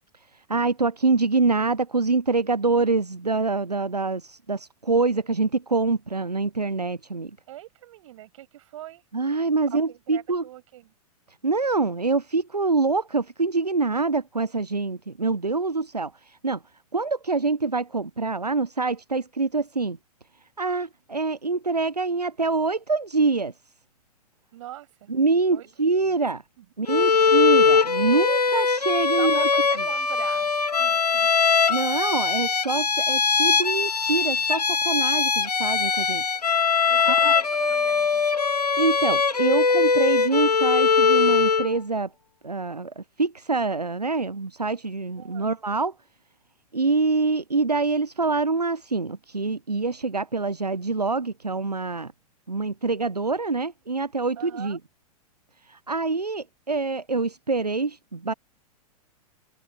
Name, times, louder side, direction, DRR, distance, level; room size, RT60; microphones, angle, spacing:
voice 1, 0.5-7.3 9.1-10.4 11.4-16.6 16.9-20.0 20.6-23.5 25.1-26.4 26.8-29.5 31.7-36.2 37.0-37.3 38.8-42.1 42.4-45.9 46.7-52.1 52.5-54.8 55.7-58.3, right 3 dB, 90° right, 0.6 m, -25 dB
voice 2, 7.5-9.0 9.7-10.9 24.5-25.1 25.5-26.2 26.6-26.7 27.0-27.1 29.2-30.5 30.8-31.3 36.9-38.2 45.2-45.6 54.4-54.8, right 14 dB, 55° right, 6.2 m, -42 dB
Bowed string instrument, 26.9-41.7, left 5 dB, 80° left, 1.8 m, -21 dB
figure-of-eight pair, 100°, 20 cm